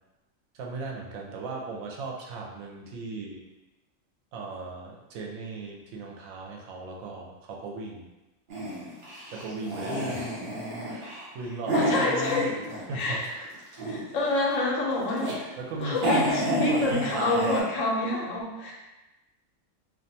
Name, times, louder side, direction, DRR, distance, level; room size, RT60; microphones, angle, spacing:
voice 1, 0.5-3.4 4.3-8.1 9.3-10.4 10.9-12.1 12.9-13.2 15.6-17.5, right 3 dB, 90° right, -1 dB, 1.0 m, -36 dB
sound 1, 8.5-13.1 13.4-14.3 14.8-15.4 15.7-15.8 15.9-17.6, equal, 50° right, 0.7 m, -30 dB
voice 2, 11.7-12.5 12.9-13.5 13.8-15.5 15.8-18.7, left 2 dB, 75° left, -2 dB, 1.0 m, -27 dB
2.5 x 2.2 x 2.7 m, 1.1 s
omnidirectional pair, 1.4 m